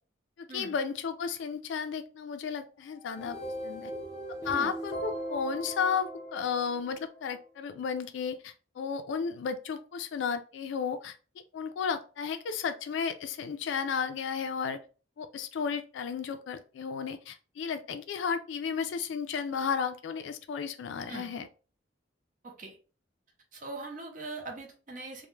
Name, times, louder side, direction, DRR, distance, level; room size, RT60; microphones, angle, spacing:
voice 1, 0.4-3.4 3.6-3.9 4.3-11.1 11.5-14.8 15.2-21.5, left 6 dB, 70° left, 9 dB, 0.3 m, -33 dB
sound 1, 2.9-7.2, right 1 dB, 30° left, 0.7 m, -39 dB
voice 2, 4.4-4.7 21.1-21.3 22.4-22.8 23.5-25.3, right 3 dB, 40° right, 2 dB, 0.6 m, -41 dB
2.2 x 2.1 x 3.0 m, 0.36 s
head